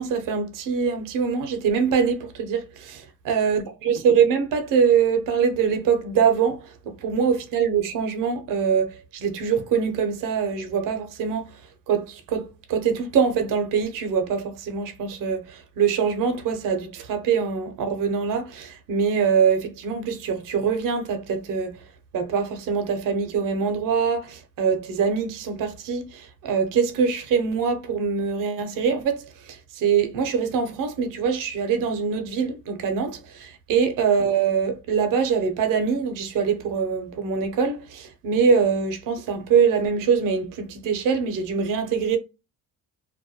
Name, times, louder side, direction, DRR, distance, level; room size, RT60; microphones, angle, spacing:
voice 1, 0.0-11.5 11.9-21.8 22.1-42.2, right 6 dB, 60° right, 0.6 m, -23 dB
2.3 x 2.1 x 2.7 m
cardioid pair, 105°, 37 cm